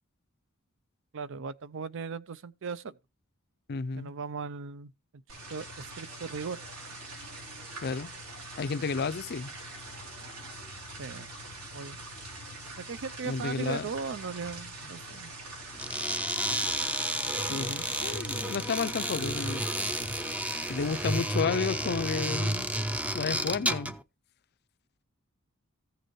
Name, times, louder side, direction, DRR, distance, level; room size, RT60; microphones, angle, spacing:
voice 1, 1.1-2.9 4.0-4.9 5.5-6.6 11.0-11.3 11.7-12.0 12.8-15.3, right 5 dB, 60° right, 0.5 m, -38 dB
voice 2, 3.7-4.1 7.8-8.1 8.6-9.5 13.2-13.9 17.4-19.7 20.7-22.7 23.1-23.9, left 5 dB, 50° left, 0.5 m, -31 dB
sound 1, 5.3-21.3, right 2 dB, 85° right, 3.8 m, -44 dB
sound 2, 15.7-24.0, right 1 dB, 5° right, 0.5 m, -31 dB
15.0 x 6.7 x 3.1 m
head